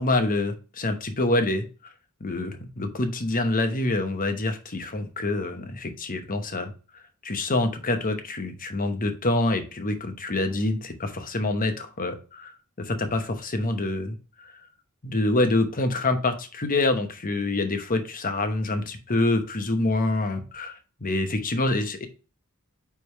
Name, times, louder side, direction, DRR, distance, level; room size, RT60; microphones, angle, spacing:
voice 1, 0.0-1.6 2.2-6.7 7.2-12.5 12.8-14.5 15.0-20.7 21.0-22.1, left 2 dB, 40° left, 7 dB, 1.0 m, -26 dB
9.2 x 3.5 x 3.2 m, 0.35 s
head